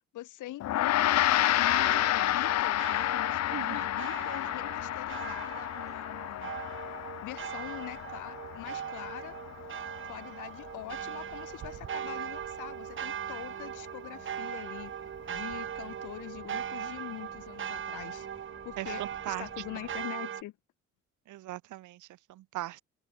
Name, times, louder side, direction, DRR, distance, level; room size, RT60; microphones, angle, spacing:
voice 1, 0.1-6.5 7.2-9.4 10.1-14.9 15.3-18.3 18.6-20.5, left 15 dB, 80° left, 1.2 m, -43 dB
Gong, 0.6-10.1, left 14 dB, 60° left, 0.6 m, -30 dB
sound 1, 0.9-20.4, right 9 dB, 40° right, 0.7 m, -40 dB
sound 2, 1.8-20.1, left 3 dB, 20° left, 2.3 m, -56 dB
voice 2, 3.5-3.9 18.8-19.5 21.3-22.8, right 15 dB, 80° right, 1.1 m, -39 dB
cardioid pair, 90°, 30 cm